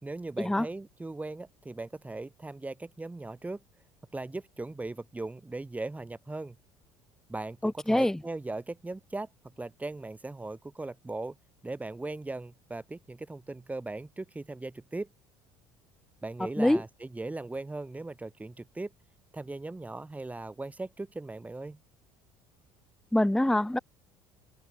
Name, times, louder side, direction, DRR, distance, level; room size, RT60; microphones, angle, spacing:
voice 1, 0.0-3.6 4.1-6.6 7.3-9.3 9.6-11.4 11.6-15.1 16.2-18.9 19.3-21.8, right 2 dB, 15° right, 3.5 m, -38 dB
voice 2, 7.6-8.2 16.6-16.8 23.1-23.8, left 1 dB, 5° left, 0.8 m, -25 dB
open air
hypercardioid pair, 75°, 10 cm